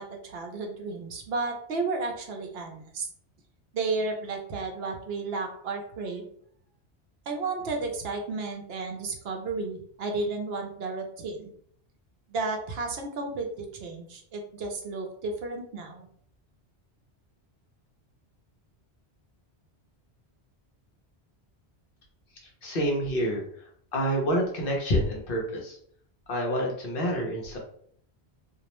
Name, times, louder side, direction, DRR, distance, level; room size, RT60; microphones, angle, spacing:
voice 1, 0.0-3.1 3.7-6.3 7.3-11.5 12.3-16.1, right 3 dB, 70° right, 2 dB, 0.8 m, -33 dB
voice 2, 22.6-23.4 23.9-25.8 26.3-27.6, equal, 60° left, -1 dB, 0.8 m, -27 dB
2.5 x 2.0 x 2.9 m, 0.62 s
omnidirectional pair, 1.1 m